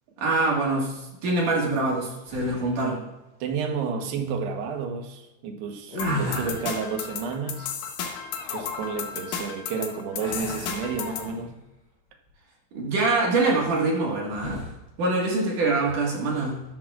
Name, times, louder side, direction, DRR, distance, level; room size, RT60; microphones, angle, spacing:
voice 1, 0.2-3.0 6.0-6.5 12.7-14.6 15.0-16.6, right 2 dB, 60° right, -2 dB, 2.9 m, -25 dB
sound 1, 2.3-2.9 5.8-6.9 10.2-11.6 12.1-12.3 14.3-14.8, left 1 dB, 15° left, 1.9 m, -35 dB
voice 2, 3.4-7.7 8.5-11.5, right 5 dB, 80° right, 4 dB, 3.1 m, -31 dB
sound 2, 6.0-11.3, left 7 dB, 70° left, 2.1 m, -34 dB
12.5 x 12.0 x 2.4 m, 0.98 s
omnidirectional pair, 4.7 m